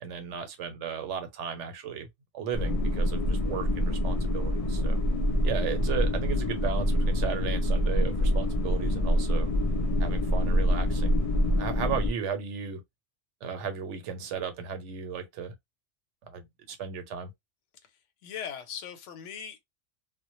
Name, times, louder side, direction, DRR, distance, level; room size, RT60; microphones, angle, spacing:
voice 1, 0.0-2.1 2.3-5.0 5.4-9.5 10.0-11.2 11.6-12.8 13.4-15.5 16.3-17.3, right 7 dB, 90° right, 0.9 m, -35 dB
sound 1, 2.5-12.1, equal, 55° left, 0.4 m, -26 dB
voice 2, 17.8-19.7, left 8 dB, 85° left, 1.0 m, -40 dB
2.1 x 2.0 x 2.9 m
omnidirectional pair, 1.2 m